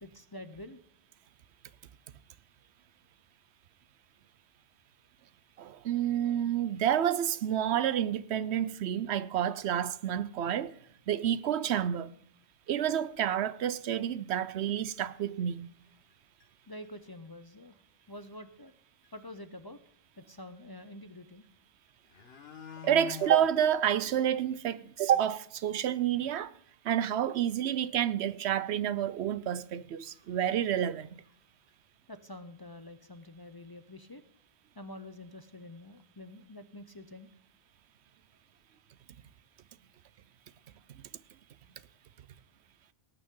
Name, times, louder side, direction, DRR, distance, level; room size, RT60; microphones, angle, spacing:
voice 1, 0.0-0.8 16.7-17.8 18.1-18.7 19.1-19.8 20.2-21.5 32.1-34.2 34.8-37.3, left 1 dB, 25° left, 0.5 m, -47 dB
voice 2, 5.6-10.7 11.1-12.1 12.7-15.7 22.8-26.5 26.8-31.2 40.9-41.0, right 10 dB, 80° right, 0.9 m, -29 dB
sound 1, 13.1-13.2 13.7-13.8 14.1-14.2 15.2-15.3 15.8-16.1 16.4-16.5 16.8-17.3 18.7-18.8 19.0-19.1 21.4-21.5 21.9-23.5 23.9-24.0 24.4-24.5 24.9-25.0 25.3-25.4 28.2-28.3 28.6-28.8 29.5-29.6 30.1-30.3 30.5-31.3 31.7-31.8, left 8 dB, 65° left, 1.4 m, -48 dB
18.0 x 9.1 x 3.7 m
omnidirectional pair, 1.1 m